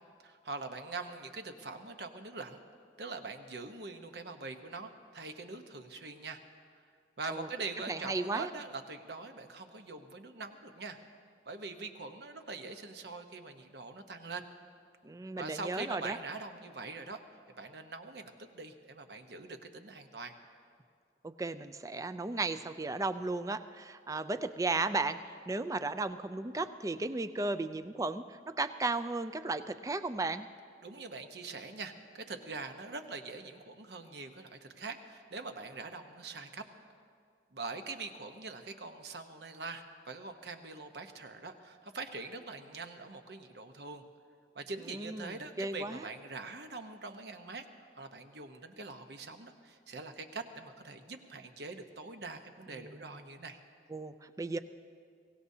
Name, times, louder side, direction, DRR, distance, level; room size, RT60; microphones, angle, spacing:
voice 1, 0.2-2.6 3.0-6.4 7.2-11.0 11.5-14.4 15.3-17.2 17.6-20.3 30.8-36.6 37.5-44.0 44.5-47.6 48.0-53.6, right 3 dB, 65° right, 6 dB, 1.0 m, -43 dB
voice 2, 7.9-8.5 15.0-16.2 21.2-30.5 44.9-46.1 52.7-53.1 53.9-54.6, right 3 dB, 20° right, 11 dB, 0.4 m, -35 dB
23.5 x 17.0 x 2.8 m, 2.2 s
head